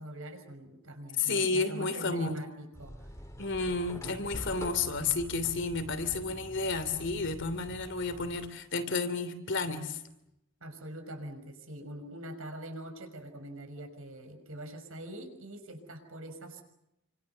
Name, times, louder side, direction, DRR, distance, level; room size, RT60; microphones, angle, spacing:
voice 1, 0.0-3.2 10.6-16.6, right 1 dB, 65° right, 6 dB, 6.0 m, -43 dB
voice 2, 1.2-2.4 3.4-10.0, left 4 dB, 55° left, 10 dB, 3.0 m, -31 dB
sound 1, 2.7-8.5, equal, 15° left, 2.2 m, -45 dB
29.0 x 26.0 x 6.9 m, 0.85 s
head